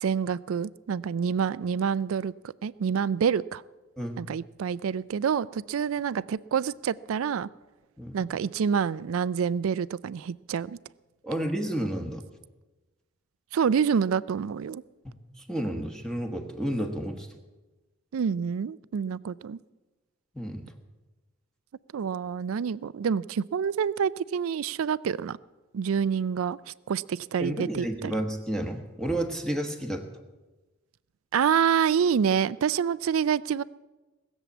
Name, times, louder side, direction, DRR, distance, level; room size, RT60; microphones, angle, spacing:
voice 1, 0.0-2.3 2.6-3.6 4.2-7.5 8.1-10.8 13.5-14.8 18.1-19.6 21.9-25.4 25.7-28.1 31.3-33.6, right 7 dB, 75° right, 20 dB, 0.4 m, -27 dB
voice 2, 11.2-12.2 15.0-17.3 20.3-20.7 27.4-30.1, right 1 dB, 5° left, 3 dB, 1.2 m, -31 dB
19.5 x 7.3 x 8.3 m, 1.2 s
head